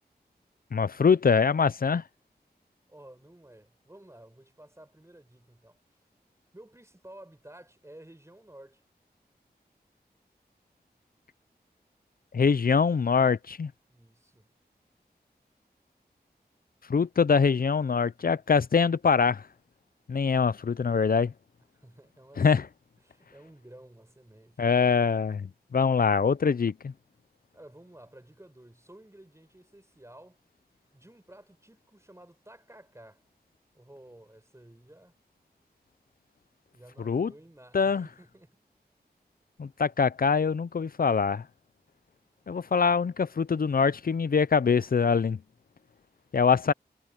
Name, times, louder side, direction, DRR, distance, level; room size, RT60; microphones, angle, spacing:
voice 1, 0.7-2.0 12.3-13.7 16.9-19.4 20.1-21.3 22.4-22.7 24.6-26.9 37.0-37.3 37.7-38.1 39.6-41.4 42.5-45.4 46.3-46.7, left 5 dB, 60° left, 0.5 m, -24 dB
voice 2, 2.9-5.8 6.5-8.8 13.9-14.5 21.7-22.5 23.0-24.6 27.5-30.4 30.9-33.2 33.7-35.2 36.7-38.6, right 1 dB, 15° right, 5.9 m, -52 dB
wide cardioid pair, 80°, 17 cm